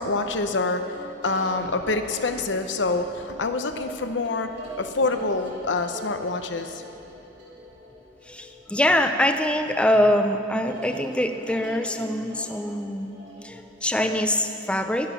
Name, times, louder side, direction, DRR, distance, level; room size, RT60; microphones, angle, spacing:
voice 1, 0.0-6.8, left 3 dB, 80° left, 7 dB, 0.8 m, -26 dB
sound 1, 0.7-9.5 9.8-10.2 10.6-14.3, right 1 dB, 70° right, 3.3 m, -42 dB
voice 2, 8.3-13.1 13.4-15.1, left 1 dB, 5° left, 6 dB, 0.5 m, -24 dB
12.0 x 11.0 x 6.0 m, 2.7 s
head